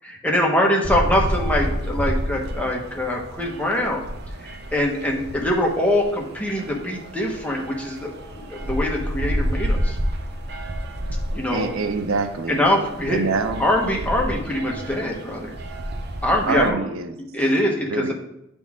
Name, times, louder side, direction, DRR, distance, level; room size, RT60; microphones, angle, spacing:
voice 1, 0.0-4.0 4.4-10.0 11.3-11.7 12.5-13.3 13.6-15.5 16.2-16.8 17.3-18.1, left 1 dB, 5° left, -1 dB, 1.2 m, -23 dB
sound 1, 0.8-16.7, equal, 50° right, 0.8 m, -30 dB
voice 2, 11.5-12.6 13.1-13.7 16.4-17.2 17.8-18.1, right 4 dB, 90° right, 8 dB, 0.6 m, -25 dB
10.0 x 4.0 x 3.6 m, 0.82 s
head